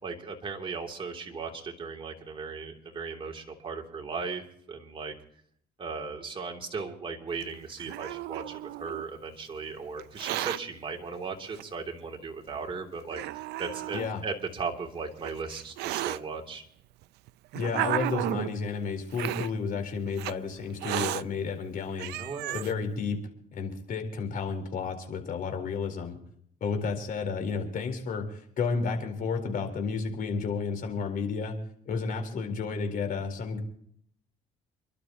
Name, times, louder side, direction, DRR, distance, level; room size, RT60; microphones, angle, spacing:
voice 1, 0.0-4.4 4.7-5.1 5.8-16.6 22.2-22.7, right 4 dB, 30° right, 1 dB, 3.0 m, -37 dB
Hiss, 7.4-9.1 10.0-10.6 11.6-11.7 12.5-12.6 13.1-14.1 15.0-16.2 17.0-18.5 19.1-19.5 20.2-20.3 20.8-21.2 21.7-21.8 22.0-22.7, right 16 dB, 80° right, 0.5 m, -33 dB
voice 2, 17.5-22.2 22.5-23.2 23.5-26.2 26.6-31.6 31.9-33.6, left 5 dB, 55° left, 4 dB, 4.2 m, -32 dB
29.0 x 12.0 x 3.0 m, 0.65 s
cardioid pair, 110°, 17 cm